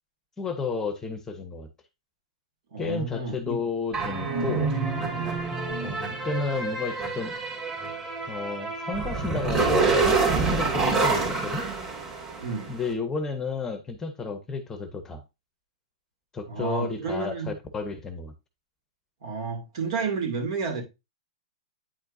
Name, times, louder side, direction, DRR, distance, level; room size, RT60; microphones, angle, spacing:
voice 1, 0.4-1.7 2.8-4.7 5.8-7.4 8.3-11.7 12.7-15.2 16.3-18.3, left 4 dB, 15° left, 0.9 m, -32 dB
voice 2, 2.7-3.6 4.3-4.5 12.4-12.7 16.5-17.5 19.2-20.8, right 4 dB, 65° right, 2.5 m, -31 dB
sound 1, 3.9-12.6, right 4 dB, 20° right, 2.3 m, -27 dB
9.0 x 4.4 x 2.6 m
hypercardioid pair, 130°, 3 cm